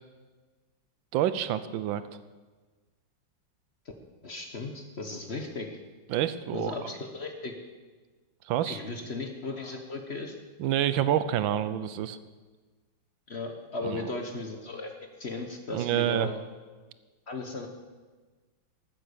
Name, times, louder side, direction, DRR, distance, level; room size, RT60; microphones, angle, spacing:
voice 1, 1.1-2.0 6.1-6.7 8.5-8.8 10.6-12.2 13.8-14.0 15.7-16.3, right 11 dB, 80° right, 14 dB, 1.4 m, -27 dB
voice 2, 4.2-5.7 6.5-7.5 8.6-10.3 13.3-14.9 15.2-16.4 17.3-17.7, left 3 dB, 40° left, 4 dB, 1.1 m, -36 dB
13.5 x 9.1 x 6.9 m, 1.3 s
omnidirectional pair, 2.1 m